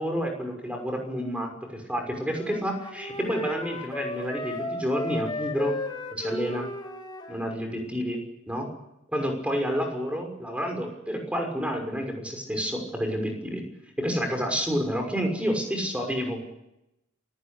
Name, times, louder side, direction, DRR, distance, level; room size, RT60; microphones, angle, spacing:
voice 1, 0.0-5.8 6.1-6.7 7.3-8.2 8.5-8.7 9.1-13.6 14.0-16.4, equal, 5° right, 3 dB, 6.1 m, -29 dB
Wind instrument woodwind instrument, 2.3-7.5, left 1 dB, 20° left, 4.7 m, -35 dB
27.5 x 17.0 x 8.6 m, 0.87 s
head